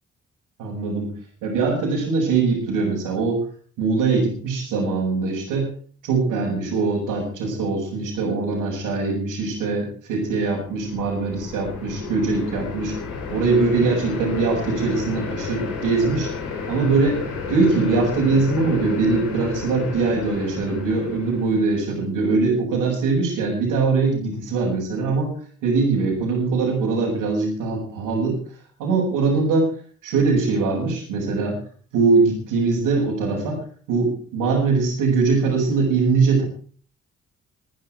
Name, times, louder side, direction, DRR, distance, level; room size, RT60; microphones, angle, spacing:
voice 1, 0.6-1.1 1.4-3.4 3.8-5.7 6.0-12.9 13.3-16.3 16.7-25.3 25.6-28.4 28.8-29.7 30.0-31.6 31.9-33.6 33.9-36.4, right 4 dB, 75° right, -5 dB, 6.1 m, -22 dB
sound 1, 10.6-21.9, left 4 dB, 75° left, 3.7 m, -32 dB
24.5 x 10.5 x 4.6 m, 0.44 s
hypercardioid pair, 40°, 34 cm